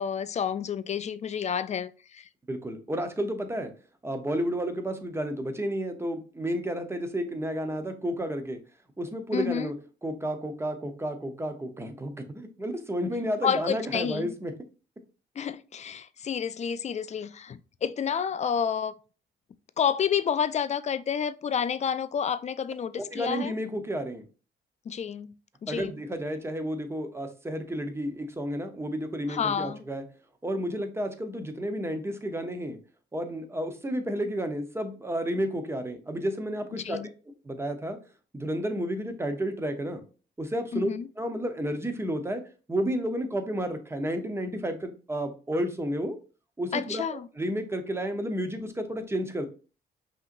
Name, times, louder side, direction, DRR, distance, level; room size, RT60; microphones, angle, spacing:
voice 1, 0.0-2.3 9.3-9.7 13.4-14.3 15.4-18.9 19.8-23.5 24.9-25.3 25.6-26.0 29.3-29.8 36.7-37.1 40.7-41.1 46.7-47.3, left 7 dB, 35° left, 0.3 m, -29 dB
voice 2, 2.5-3.7 4.0-8.6 9.0-9.7 10.0-14.5 23.0-24.2 25.7-30.0 30.4-32.8 33.1-37.0 37.4-38.0 38.3-40.0 40.4-40.9 41.2-42.4 42.7-46.2 46.6-49.5, equal, 10° right, 0.8 m, -31 dB
5.5 x 2.9 x 2.6 m
cardioid pair, 90°, 20 cm